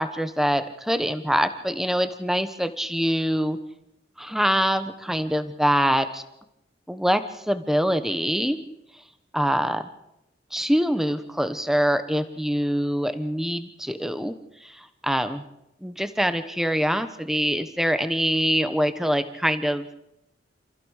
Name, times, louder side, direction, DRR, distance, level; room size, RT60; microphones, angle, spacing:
voice 1, 0.0-3.6 4.2-6.2 6.9-7.2 7.5-8.6 9.3-9.8 10.5-14.3 14.6-14.7 15.0-15.4 15.8-19.9, equal, ahead, 10 dB, 1.2 m, -24 dB
28.0 x 15.0 x 6.6 m, 0.85 s
head